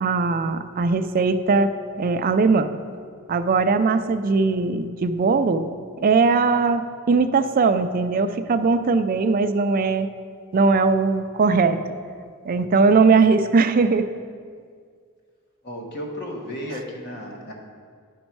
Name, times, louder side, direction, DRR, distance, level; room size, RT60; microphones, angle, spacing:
voice 1, 0.0-1.7 2.0-2.7 3.3-5.7 6.0-6.8 7.1-10.1 10.5-11.8 12.5-14.1, right 4 dB, 40° right, 9 dB, 0.4 m, -19 dB
voice 2, 15.6-17.5, equal, 50° left, 0 dB, 1.3 m, -33 dB
11.0 x 5.3 x 4.6 m, 2.1 s
head